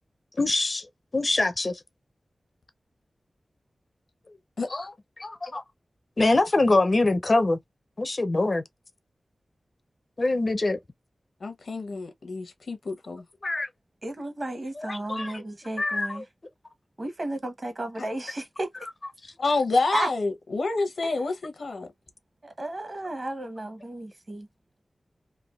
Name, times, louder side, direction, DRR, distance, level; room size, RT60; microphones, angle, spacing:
voice 1, 0.4-0.9 1.1-1.8 4.7-4.9 5.2-5.6 6.2-7.6 8.0-8.6 10.2-10.8 13.4-13.7 14.8-15.4 15.8-16.2, left 2 dB, 40° left, 0.4 m, -24 dB
voice 2, 11.4-13.2 18.0-18.1 19.4-21.9, left 3 dB, 80° left, 0.7 m, -28 dB
voice 3, 14.0-16.2 17.0-18.7 19.9-20.1 21.0-21.1 22.4-24.5, right 2 dB, 40° right, 0.9 m, -33 dB
3.3 x 2.2 x 2.2 m
wide cardioid pair, 90°, 0 cm